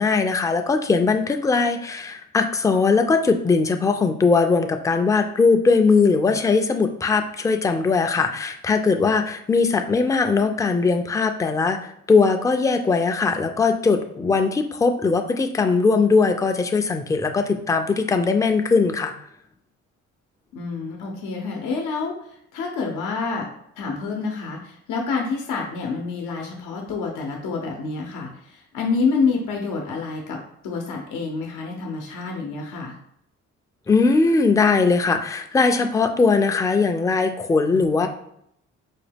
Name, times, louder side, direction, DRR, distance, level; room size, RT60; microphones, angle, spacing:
voice 1, 0.0-11.8 12.1-19.1 33.9-38.1, left 4 dB, 10° left, 5 dB, 0.3 m, -20 dB
voice 2, 20.5-22.1 22.5-23.5 23.8-30.4 30.6-32.9, left 4 dB, 85° left, 1 dB, 0.7 m, -27 dB
4.0 x 2.2 x 3.4 m, 0.73 s
cardioid pair, 90°, 30 cm